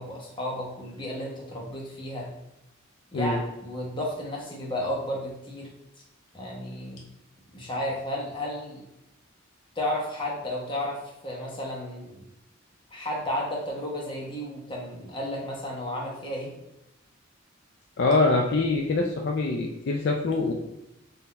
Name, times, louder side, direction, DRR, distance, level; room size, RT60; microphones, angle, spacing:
voice 1, 0.0-2.3 3.1-5.7 6.3-7.1 7.5-8.8 9.7-12.2 12.9-16.6, left 1 dB, 25° left, -3 dB, 1.0 m, -33 dB
voice 2, 18.0-20.5, left 3 dB, 55° left, 1 dB, 0.4 m, -24 dB
3.9 x 2.7 x 4.0 m, 0.89 s
head